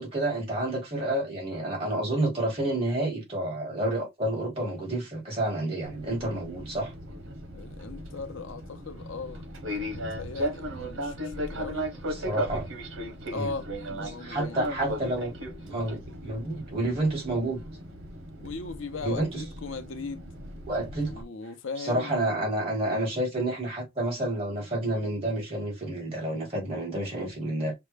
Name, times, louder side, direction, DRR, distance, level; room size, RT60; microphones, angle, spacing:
voice 1, 0.0-6.9 12.1-12.7 13.3-13.5 14.0-15.3 15.6-17.6 19.0-19.4 20.7-21.1 21.8-27.7, right 1 dB, 30° right, 1.9 m, -29 dB
Fixed-wing aircraft airplane, 5.8-21.2, equal, 85° right, 1.0 m, -36 dB
voice 2, 7.5-9.5 9.9-11.9 13.3-15.1 18.4-20.3 21.0-22.1, left 4 dB, 80° left, 0.7 m, -39 dB
6.0 x 2.2 x 3.2 m
head